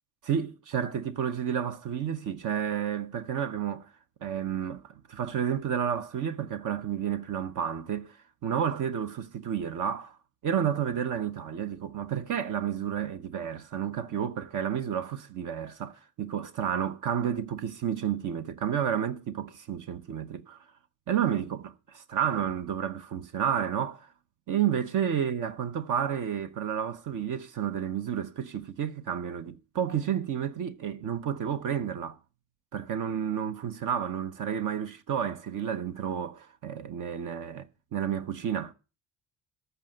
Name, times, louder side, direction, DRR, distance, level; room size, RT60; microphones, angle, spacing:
voice 1, 0.2-3.9 4.2-8.2 8.4-10.2 10.4-20.6 21.1-24.1 24.5-32.2 32.7-38.7, right 8 dB, 60° right, 1.0 m, -31 dB
13.5 x 5.5 x 7.8 m
cardioid pair, 95°, 35 cm